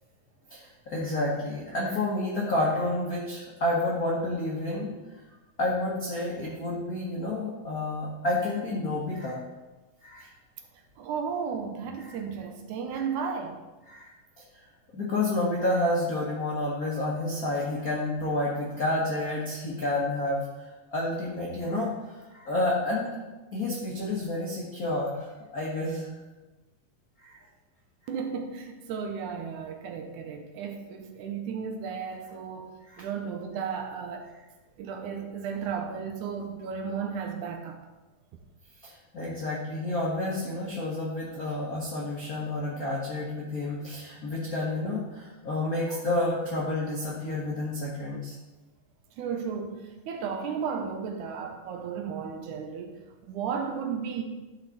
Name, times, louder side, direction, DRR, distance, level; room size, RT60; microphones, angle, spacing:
voice 1, 0.5-5.0 5.6-9.4 10.0-10.3 12.0-12.1 13.9-14.1 14.9-20.4 20.9-21.9 22.3-23.2 23.5-26.1 27.2-27.3 32.9-33.0 38.8-48.3, left 2 dB, 75° left, -4 dB, 0.8 m, -30 dB
voice 2, 11.0-13.6 28.1-32.7 33.0-34.3 34.8-37.8 49.2-54.2, right 6 dB, 75° right, 5 dB, 2.1 m, -34 dB
12.0 x 4.9 x 4.1 m, 1.1 s
omnidirectional pair, 3.8 m